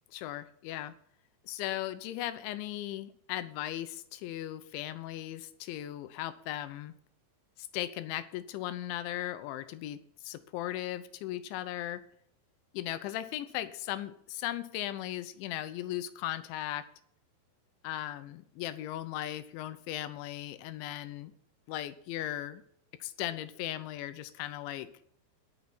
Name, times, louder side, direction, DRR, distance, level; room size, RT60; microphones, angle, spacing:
voice 1, 0.1-0.9 1.4-6.9 7.6-12.0 12.7-16.9 17.8-21.3 21.7-22.6 23.0-24.9, left 13 dB, 80° left, 12 dB, 3.1 m, -37 dB
21.5 x 7.3 x 4.3 m, 0.67 s
omnidirectional pair, 5.4 m